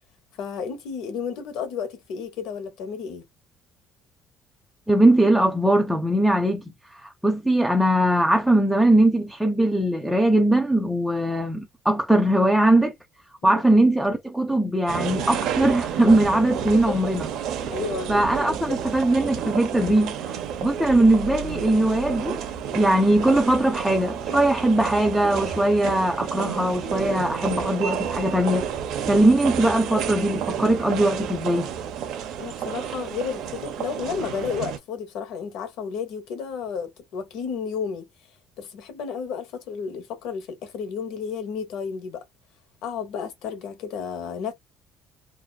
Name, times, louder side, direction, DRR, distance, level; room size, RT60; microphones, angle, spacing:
voice 1, 0.4-3.2 13.4-13.6 16.7-16.9 17.7-18.8 32.4-38.1 38.6-42.2 42.8-44.5, left 6 dB, 75° left, 1.0 m, -32 dB
voice 2, 4.9-6.6 6.9-12.9 13.4-17.3 18.1-22.4 22.7-28.6 29.1-31.7, right 1 dB, ahead, 0.5 m, -20 dB
sound 1, 14.9-34.8, right 8 dB, 70° right, 0.6 m, -30 dB
2.7 x 2.1 x 2.2 m
cardioid pair, 100°, 0 cm